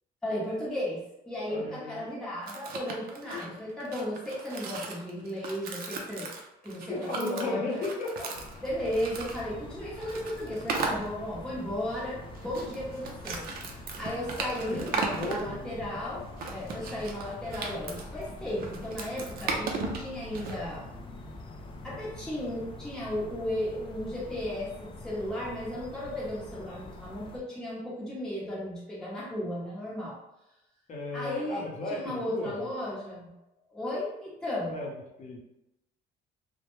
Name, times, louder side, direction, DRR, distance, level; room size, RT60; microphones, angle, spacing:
voice 1, 0.2-6.3 6.6-7.8 8.6-20.9 21.8-30.2 31.1-33.3 33.7-34.8, left 1 dB, 5° left, -8 dB, 0.8 m, -35 dB
voice 2, 1.5-2.0 3.2-3.4 6.9-8.3 14.7-14.8 15.1-15.7 30.9-32.7 34.7-35.4, left 2 dB, 45° left, -2 dB, 0.8 m, -35 dB
sound 1, 2.5-9.4 10.0-11.1 12.3-15.4 16.4-20.6, right 4 dB, 60° right, 0.5 m, -36 dB
sound 2, 8.3-27.4, left 2 dB, 30° left, 0.3 m, -45 dB
2.1 x 2.0 x 3.0 m, 0.92 s
cardioid pair, 110°, 17 cm